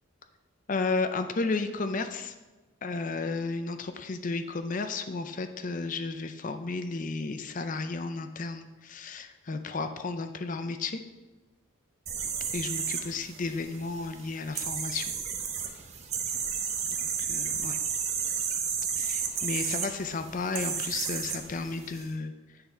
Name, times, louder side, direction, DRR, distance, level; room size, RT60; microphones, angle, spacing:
voice 1, 0.7-2.3 2.8-11.0 12.5-15.1 17.3-17.8 19.0-22.3, left 3 dB, 40° left, 9 dB, 0.5 m, -33 dB
sound 1, 12.1-22.1, right 6 dB, 35° right, 0.7 m, -33 dB
9.5 x 4.0 x 4.4 m, 1.2 s
head